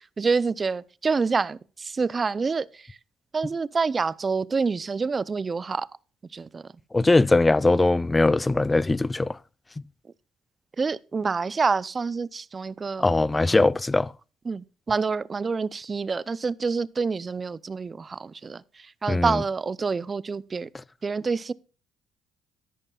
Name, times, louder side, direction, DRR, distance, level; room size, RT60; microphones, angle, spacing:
voice 1, 0.2-2.7 3.3-5.9 6.3-6.6 10.8-13.1 14.5-18.6 19.0-20.7 21.0-21.5, right 4 dB, 35° right, 0.5 m, -27 dB
voice 2, 6.9-9.4 13.0-14.1 19.1-19.4, left 2 dB, 20° left, 0.4 m, -21 dB
13.0 x 10.5 x 2.4 m
hypercardioid pair, 60°, 0 cm